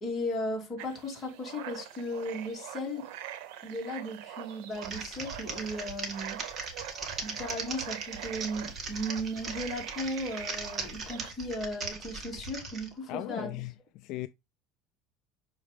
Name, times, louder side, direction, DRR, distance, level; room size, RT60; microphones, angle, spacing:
voice 1, 0.0-3.1 3.6-6.4 7.2-13.5, equal, 20° left, 2.6 m, -36 dB
sound 1, 0.8-11.3, right 11 dB, 75° right, 1.0 m, -44 dB
Typing, 4.7-12.9, right 3 dB, 25° right, 1.8 m, -39 dB
voice 2, 13.1-14.3, left 17 dB, 60° left, 0.3 m, -37 dB
6.3 x 4.7 x 3.4 m
cardioid pair, 145°, 0 cm